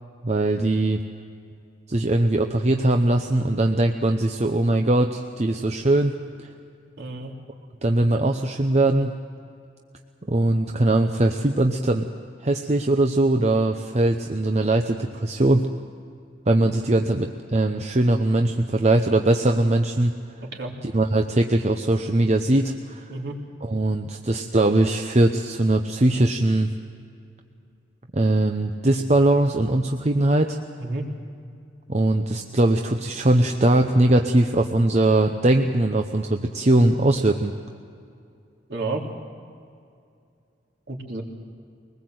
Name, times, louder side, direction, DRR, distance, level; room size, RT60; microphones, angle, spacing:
voice 1, 0.2-1.0 1.9-6.5 7.8-9.2 10.3-12.1 12.4-15.7 16.5-20.1 20.8-23.0 23.6-26.7 28.1-30.6 31.9-37.5, right 1 dB, 35° right, 4 dB, 0.8 m, -21 dB
voice 2, 7.0-7.3 20.5-20.7 23.1-23.4 30.8-31.1 38.7-39.1 40.9-41.2, right 2 dB, 65° right, -1 dB, 3.4 m, -30 dB
23.0 x 20.0 x 7.9 m, 2.4 s
head